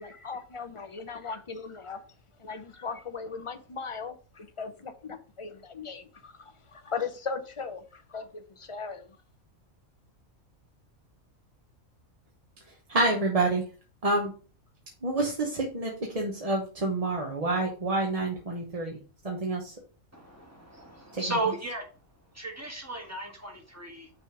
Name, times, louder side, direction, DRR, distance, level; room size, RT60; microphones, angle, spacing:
voice 1, 0.0-2.0 2.4-9.2, left 5 dB, 45° left, 0.4 m, -38 dB
voice 2, 12.6-13.7 14.0-14.3 15.0-19.0 19.2-19.8 21.1-21.4, right 2 dB, 30° right, 1.0 m, -28 dB
voice 3, 20.1-21.8 22.3-24.1, right 2 dB, 10° right, 1.5 m, -34 dB
5.8 x 3.4 x 5.8 m
omnidirectional pair, 1.4 m